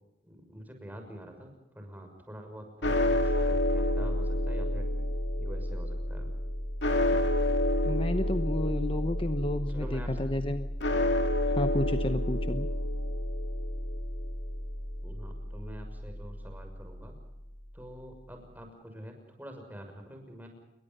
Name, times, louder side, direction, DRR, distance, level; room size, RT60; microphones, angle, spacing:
voice 1, 0.2-4.9 5.4-6.3 9.7-10.2 15.0-17.1 17.7-20.5, equal, 10° right, 4 dB, 6.3 m, -46 dB
sound 1, 2.8-17.1, left 1 dB, 75° left, 2.4 m, -30 dB
voice 2, 7.8-10.7 11.5-12.7, left 1 dB, 30° left, 9 dB, 1.0 m, -31 dB
29.0 x 22.5 x 5.5 m, 0.91 s
head